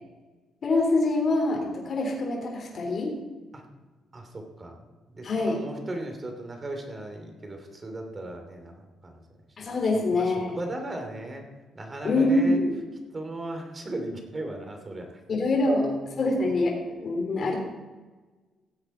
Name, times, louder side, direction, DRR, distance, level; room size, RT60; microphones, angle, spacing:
voice 1, 0.6-3.2 5.2-5.6 9.6-10.6 12.0-12.7 15.3-15.9 16.2-17.6, left 2 dB, 50° left, 0 dB, 3.4 m, -25 dB
voice 2, 4.1-9.2 9.9-11.4 11.7-12.6 13.1-15.2 15.6-16.2, right 1 dB, 30° right, 4 dB, 2.9 m, -37 dB
16.0 x 8.1 x 4.5 m, 1.3 s
cardioid pair, 90°, 0 cm